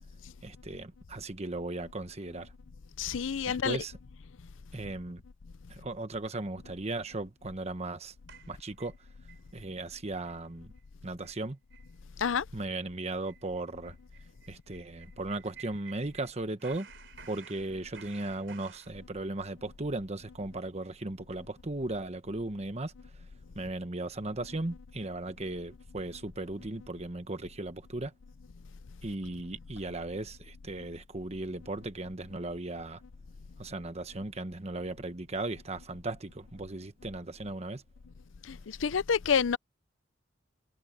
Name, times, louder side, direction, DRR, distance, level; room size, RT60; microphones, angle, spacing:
voice 1, 0.4-2.5 3.5-4.0 4.7-5.2 5.7-8.1 8.5-8.9 9.5-10.7 11.0-11.6 12.5-13.9 14.5-16.9 17.3-22.9 23.6-28.1 29.0-33.0 33.6-37.8, right 2 dB, 35° right, 1.1 m, -37 dB
voice 2, 3.0-3.8 12.2-12.4 38.5-39.6, left 6 dB, 80° left, 0.6 m, -28 dB
sound 1, 8.3-9.4 9.8-9.9 10.3-10.5 10.8-10.9 11.2-11.4 11.7-11.9 12.2-12.3 12.7-16.3 16.6-18.9, right 7 dB, 70° right, 4.2 m, -53 dB
head